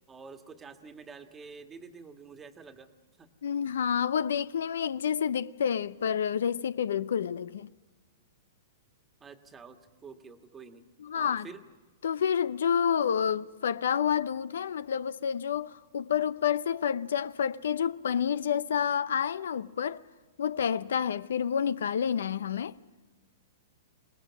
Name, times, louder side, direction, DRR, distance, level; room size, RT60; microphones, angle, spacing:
voice 1, 0.1-2.9 3.2-3.3 9.2-10.8 11.1-11.6, right 5 dB, 15° right, 1.5 m, -48 dB
voice 2, 3.4-7.7 11.0-11.5 12.0-20.0 20.4-22.8, left 8 dB, 75° left, 0.6 m, -29 dB
27.5 x 19.0 x 6.2 m
hypercardioid pair, 120°, 0 cm